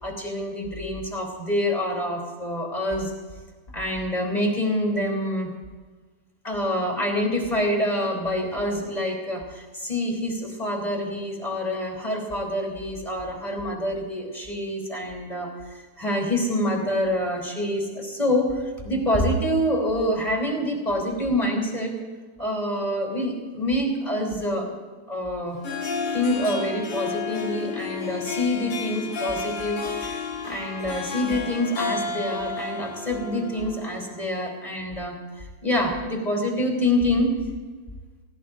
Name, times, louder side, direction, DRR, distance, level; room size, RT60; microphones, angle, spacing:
voice 1, 0.0-3.1 3.7-5.5 6.4-21.9 22.4-24.7 25.1-25.6 26.1-30.2 30.4-37.4, left 1 dB, 10° left, 0 dB, 3.0 m, -26 dB
Harp, 25.5-34.2, left 4 dB, 45° left, 2.9 m, -32 dB
26.5 x 17.5 x 2.6 m, 1.4 s
omnidirectional pair, 3.9 m